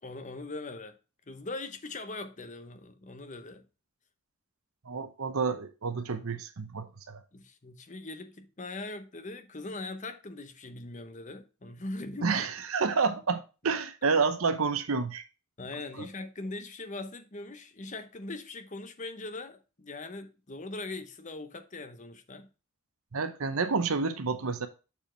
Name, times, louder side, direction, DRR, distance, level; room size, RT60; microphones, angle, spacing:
voice 1, 0.0-1.0 1.3-3.6 7.3-12.5 15.6-22.5, left 2 dB, 35° left, 0.8 m, -41 dB
voice 2, 4.9-7.2 12.2-15.2 16.0-16.1 23.1-24.7, right 4 dB, 70° right, 0.8 m, -29 dB
7.0 x 4.6 x 4.4 m
head